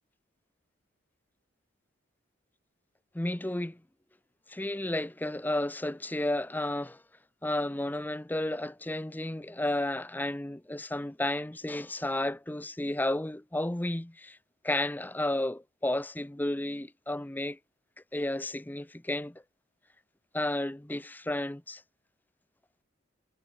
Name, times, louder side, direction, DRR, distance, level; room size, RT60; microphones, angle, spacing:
voice 1, 3.1-3.8 4.5-7.0 7.4-14.4 14.6-17.6 18.1-19.4 20.3-21.8, left 1 dB, 10° left, 0.6 m, -32 dB
head